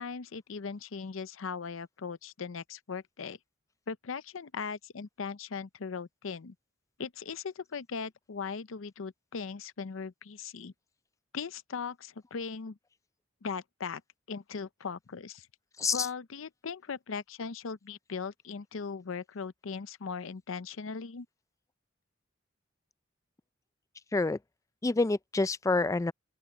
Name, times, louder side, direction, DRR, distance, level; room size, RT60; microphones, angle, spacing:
voice 1, 0.0-3.4 3.9-6.5 7.0-10.7 11.3-12.8 13.4-14.0 14.3-15.5 15.9-21.3, left 5 dB, 85° left, 0.6 m, -39 dB
voice 2, 24.8-26.1, left 3 dB, 15° left, 0.3 m, -27 dB
open air
head